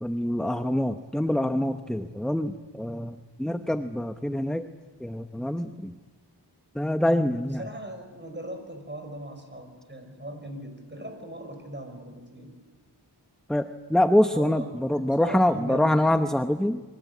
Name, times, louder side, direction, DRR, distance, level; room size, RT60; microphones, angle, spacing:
voice 1, 0.0-4.7 5.0-6.0 6.7-7.7 13.5-16.8, left 1 dB, ahead, 8 dB, 0.9 m, -25 dB
voice 2, 7.6-12.5 14.3-14.7 14.9-16.0, right 1 dB, 25° right, 5 dB, 5.8 m, -39 dB
29.0 x 23.5 x 8.4 m, 1.3 s
wide cardioid pair, 80°, 42 cm